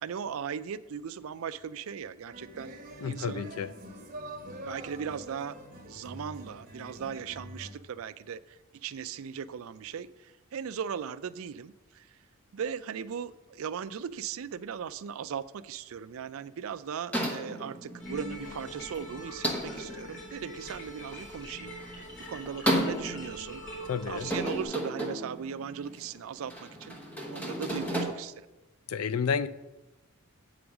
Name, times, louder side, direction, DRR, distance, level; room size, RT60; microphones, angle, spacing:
voice 1, 0.0-2.7 3.0-3.5 4.6-5.5 5.9-12.2 12.5-21.7 22.3-23.6 24.0-27.0 27.3-28.5, right 7 dB, 65° right, 14 dB, 0.4 m, -38 dB
sound 1, 2.3-7.7, right 1 dB, 40° right, 1.1 m, -45 dB
voice 2, 3.0-3.7 23.9-24.3 28.9-29.5, left 6 dB, 75° left, 15 dB, 0.4 m, -30 dB
sound 2, 17.1-28.0, equal, 5° left, 1.0 m, -34 dB
sound 3, 18.0-24.6, equal, 50° left, 3.0 m, -44 dB
7.8 x 5.0 x 7.1 m, 1.0 s
head